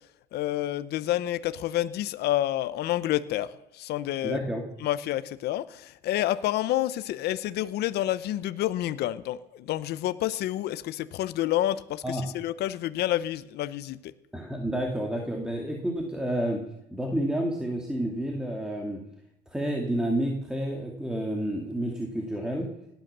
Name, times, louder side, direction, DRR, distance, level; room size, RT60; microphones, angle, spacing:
voice 1, 0.3-4.4 4.8-14.1, left 13 dB, 75° left, 14 dB, 0.8 m, -29 dB
voice 2, 4.2-4.6 12.0-12.3 14.3-16.6 16.9-19.0 19.5-22.7, right 1 dB, 5° right, 1 dB, 2.4 m, -30 dB
18.0 x 10.5 x 6.8 m, 0.85 s
cardioid pair, 110°, 17 cm